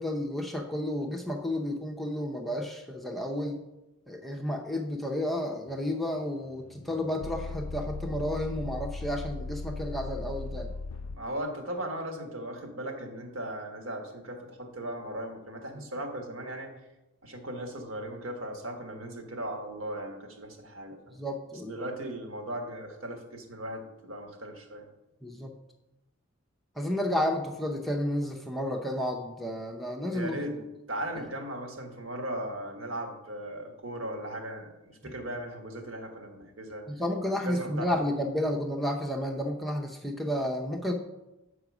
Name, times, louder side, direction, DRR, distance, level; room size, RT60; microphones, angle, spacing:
voice 1, 0.0-3.6 4.1-10.7 15.7-15.8 21.1-21.9 25.2-25.5 26.8-30.4 35.0-35.1 36.9-40.9, left 1 dB, ahead, 0 dB, 0.6 m, -31 dB
sound 1, 5.7-11.2, left 3 dB, 85° left, 0.4 m, -39 dB
voice 2, 11.1-16.7 17.2-21.1 21.7-24.9 30.1-30.6 30.9-36.8 37.4-37.9, right 1 dB, 70° right, 3 dB, 1.5 m, -37 dB
8.0 x 4.9 x 6.0 m, 0.97 s
head